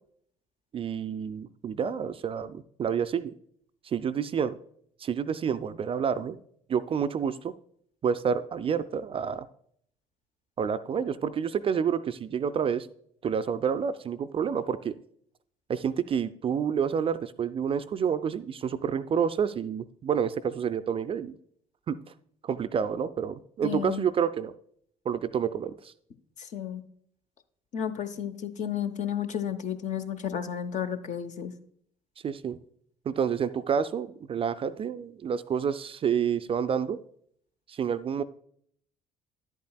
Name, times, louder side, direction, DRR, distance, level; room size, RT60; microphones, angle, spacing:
voice 1, 0.7-3.3 3.8-4.6 5.0-6.4 6.7-7.5 8.0-9.5 10.6-12.9 13.2-14.9 15.7-21.4 21.9-22.0 22.4-24.5 25.1-25.9 32.2-32.6 33.1-37.0 37.7-38.2, right 7 dB, 30° right, 12 dB, 0.4 m, -29 dB
voice 2, 23.6-24.1 26.4-26.8 27.7-31.5, left 9 dB, 45° left, 9 dB, 0.8 m, -32 dB
10.5 x 8.3 x 2.3 m, 0.64 s
figure-of-eight pair, 55°, 18 cm